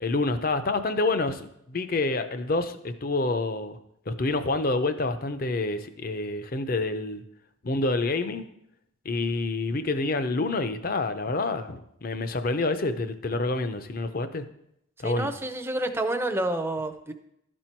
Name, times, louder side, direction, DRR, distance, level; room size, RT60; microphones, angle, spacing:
voice 1, 0.0-3.8 4.1-7.2 7.6-8.5 9.0-14.5 15.0-15.3, left 3 dB, 45° left, 10 dB, 0.5 m, -27 dB
voice 2, 15.0-17.1, right 1 dB, 10° right, 8 dB, 0.5 m, -29 dB
12.5 x 4.4 x 4.5 m, 0.78 s
head